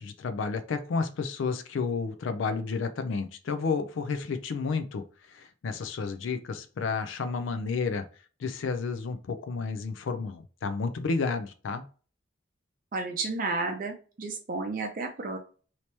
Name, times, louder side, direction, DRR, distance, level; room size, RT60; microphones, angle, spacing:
voice 1, 0.0-8.0 8.4-11.8, left 4 dB, 75° left, 9 dB, 0.4 m, -31 dB
voice 2, 12.9-15.4, right 3 dB, 45° right, 3 dB, 0.5 m, -32 dB
2.9 x 2.8 x 3.2 m, 0.38 s
head